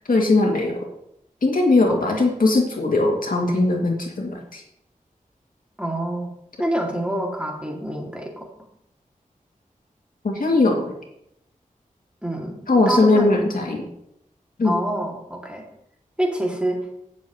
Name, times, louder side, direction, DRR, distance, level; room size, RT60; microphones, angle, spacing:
voice 1, 0.1-0.8 1.4-4.6 10.2-10.9 12.7-13.8 14.6-14.7, left 2 dB, 80° left, 0 dB, 2.3 m, -19 dB
voice 2, 1.9-2.3 5.8-6.3 6.6-8.5 12.2-13.4 14.6-15.6 16.2-16.9, right 1 dB, 10° right, -1 dB, 2.4 m, -26 dB
17.5 x 7.5 x 3.1 m, 0.78 s
wide cardioid pair, 90°, 14 cm